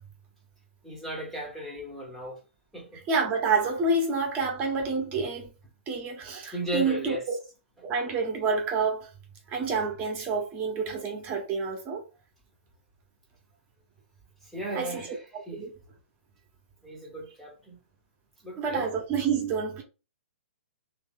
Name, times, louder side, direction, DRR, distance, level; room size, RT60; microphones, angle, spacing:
voice 1, 0.8-2.4 2.7-3.0 6.5-7.2 14.4-15.7 16.8-17.8 18.4-18.9, right 1 dB, 5° left, 1.0 m, -36 dB
voice 2, 3.1-5.5 5.9-7.4 7.8-9.1 9.5-12.0 14.7-15.1 15.5-15.7 18.6-19.8, right 4 dB, 25° right, 1.1 m, -28 dB
3.2 x 3.0 x 3.8 m
hypercardioid pair, 145°, 7 cm